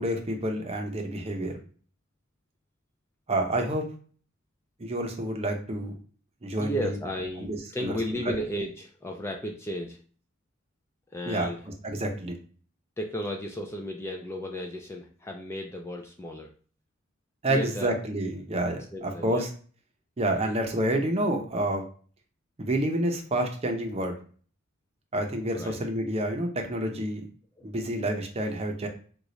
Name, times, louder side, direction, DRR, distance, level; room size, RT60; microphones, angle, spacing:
voice 1, 0.0-1.6 3.3-3.8 4.8-6.0 6.4-7.0 7.4-7.9 8.3-8.4 11.3-11.5 11.8-12.4 17.4-19.5 20.2-21.8 22.6-24.2 25.1-27.2 27.6-28.9, right 1 dB, 30° right, 3 dB, 0.6 m, -28 dB
voice 2, 6.6-10.0 11.1-11.6 13.0-16.5 17.5-18.0 18.9-19.5 20.3-20.5 25.5-25.8 27.6-27.7, left 1 dB, 10° left, 1 dB, 0.3 m, -34 dB
3.8 x 2.3 x 3.1 m, 0.42 s
head